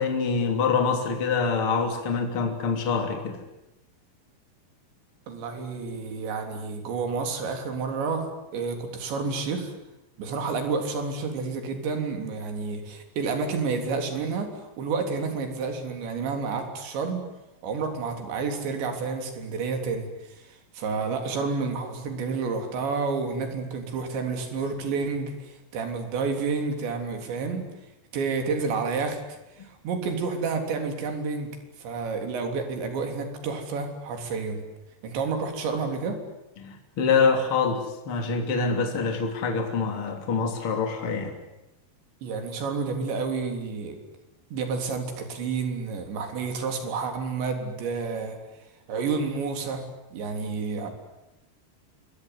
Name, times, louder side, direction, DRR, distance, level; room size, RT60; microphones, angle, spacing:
voice 1, 0.0-3.4 36.6-41.3, left 5 dB, 35° left, 4 dB, 3.5 m, -25 dB
voice 2, 5.3-8.3 8.5-9.7 10.2-17.3 17.6-27.7 28.1-29.2 29.6-31.5 31.8-34.6 35.0-36.2 42.2-44.0 44.5-48.4 48.9-49.8 50.1-50.9, right 4 dB, 80° right, 5 dB, 5.8 m, -30 dB
27.0 x 22.0 x 9.7 m, 0.94 s
omnidirectional pair, 5.1 m